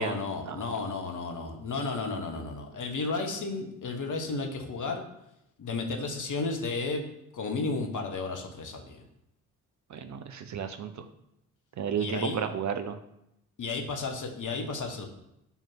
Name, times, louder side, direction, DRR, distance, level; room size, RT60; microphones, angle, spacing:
voice 1, 0.0-5.0 5.6-7.0 7.3-9.0 12.0-12.4 13.6-15.1, left 3 dB, 45° left, 4 dB, 1.6 m, -33 dB
voice 2, 9.9-11.0 11.8-13.0, right 6 dB, 40° right, 9 dB, 0.8 m, -32 dB
5.6 x 4.6 x 5.8 m, 0.83 s
figure-of-eight pair, 40°, 42 cm